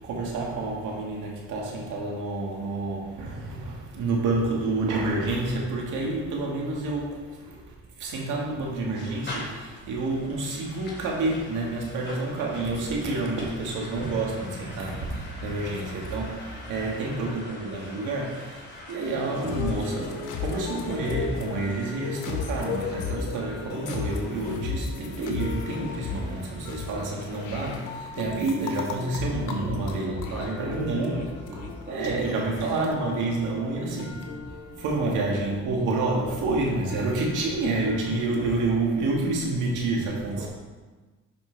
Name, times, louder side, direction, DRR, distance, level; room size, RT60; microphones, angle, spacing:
voice 1, 0.0-31.2 31.9-40.5, right 2 dB, 90° right, -2 dB, 1.8 m, -29 dB
sound 1, 8.9-28.1, left 1 dB, 35° left, 2.4 m, -45 dB
voice 2, 16.7-17.2 29.5-34.2 40.2-40.5, right 2 dB, 35° right, -5 dB, 1.6 m, -42 dB
sound 2, 19.3-38.8, left 4 dB, 85° left, 1.1 m, -36 dB
10.5 x 5.3 x 3.4 m, 1.3 s
cardioid pair, 90°, 30 cm